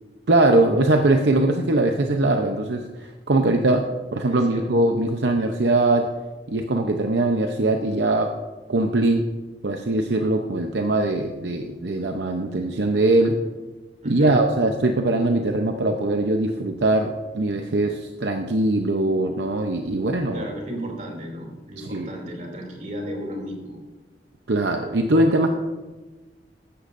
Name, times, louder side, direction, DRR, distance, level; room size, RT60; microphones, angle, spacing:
voice 1, 0.3-3.8 4.1-6.0 6.5-8.3 8.7-9.3 9.6-13.3 14.0-20.5 21.8-22.1 24.5-25.5, right 2 dB, 70° right, 4 dB, 0.7 m, -21 dB
voice 2, 4.3-4.8 14.0-14.5 20.3-23.8, equal, 45° right, 0 dB, 2.8 m, -34 dB
15.0 x 11.5 x 2.6 m, 1.2 s
head